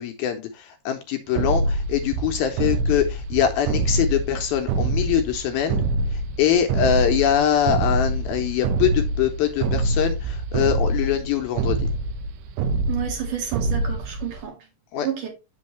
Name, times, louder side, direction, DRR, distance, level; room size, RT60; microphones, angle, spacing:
voice 1, 0.0-11.9 14.9-15.1, left 9 dB, 75° left, 2.4 m, -23 dB
sound 1, 1.4-14.5, right 2 dB, 75° right, 2.4 m, -25 dB
voice 2, 12.9-14.5 15.0-15.3, right 9 dB, 60° right, 2.6 m, -30 dB
8.5 x 6.3 x 3.1 m
omnidirectional pair, 4.9 m